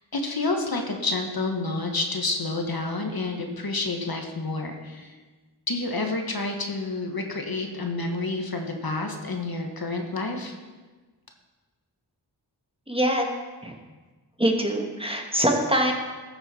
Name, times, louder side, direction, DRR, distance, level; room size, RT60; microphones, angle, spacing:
voice 1, 0.1-5.2 5.7-10.5, left 3 dB, 55° left, 3 dB, 1.5 m, -29 dB
voice 2, 12.9-13.3 13.6-13.7 14.4-15.9, equal, 15° right, 2 dB, 1.4 m, -23 dB
14.0 x 6.9 x 4.4 m, 1.3 s
wide cardioid pair, 55°, 43 cm